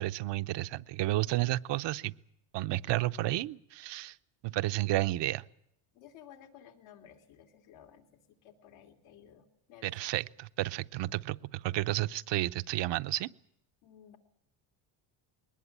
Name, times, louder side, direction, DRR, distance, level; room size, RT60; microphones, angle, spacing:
voice 1, 0.0-2.1 2.5-4.2 4.4-5.4 9.8-13.3, right 16 dB, 60° right, 14 dB, 0.8 m, -31 dB
voice 2, 5.9-10.1 13.8-14.2, left 9 dB, 85° left, 3 dB, 3.2 m, -55 dB
21.5 x 19.5 x 8.7 m, 0.78 s
cardioid pair, 120°, 47 cm